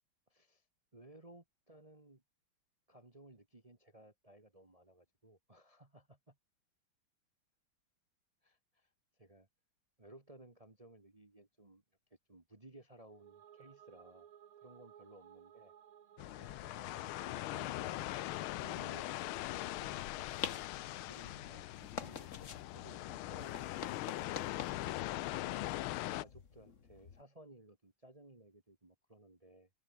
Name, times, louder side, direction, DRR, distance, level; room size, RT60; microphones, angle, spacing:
voice 1, 0.3-0.6 0.9-2.2 2.9-6.4 8.4-8.9 9.2-9.5 10.0-11.8 12.3-14.3 14.6-15.7 16.7-20.4 21.0-24.5 25.3-25.6 26.1-29.7, right 1 dB, 20° right, 1.6 m, -59 dB
sound 1, 13.0-18.8, right 9 dB, 85° right, 2.3 m, -60 dB
sound 2, 16.2-26.2, left 17 dB, 85° left, 1.5 m, -41 dB
sound 3, 19.7-27.2, left 6 dB, 40° left, 1.6 m, -48 dB
omnidirectional pair, 2.3 m